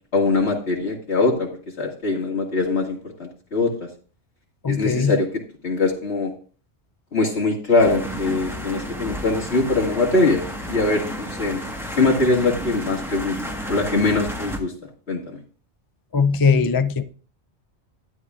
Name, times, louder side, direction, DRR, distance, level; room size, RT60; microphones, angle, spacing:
voice 1, 0.1-1.5 1.8-3.9 4.7-5.3 5.6-6.3 7.1-11.6 12.0-13.4 13.7-14.7 15.1-15.4, left 3 dB, 70° left, -1 dB, 2.5 m, -22 dB
voice 2, 4.6-5.2 16.1-17.0, left 5 dB, 35° left, 9 dB, 0.4 m, -20 dB
sound 1, 7.8-14.6, equal, ahead, 1.4 m, -32 dB
12.5 x 10.5 x 2.5 m, 0.40 s
omnidirectional pair, 1.1 m